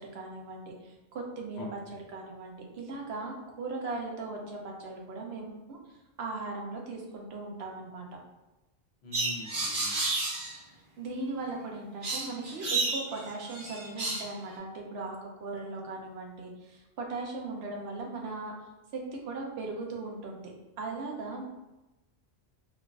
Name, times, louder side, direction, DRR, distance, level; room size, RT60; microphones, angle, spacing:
voice 1, 0.0-5.8 6.2-8.1 11.0-18.5 18.9-20.5 20.8-21.5, right 3 dB, 80° right, 0 dB, 0.9 m, -38 dB
voice 2, 9.0-10.1, equal, 80° left, -1 dB, 1.0 m, -43 dB
sound 1, 9.1-10.5 12.0-14.3, right 3 dB, 55° right, 1.0 m, -31 dB
3.7 x 2.4 x 2.3 m, 1.0 s
omnidirectional pair, 1.1 m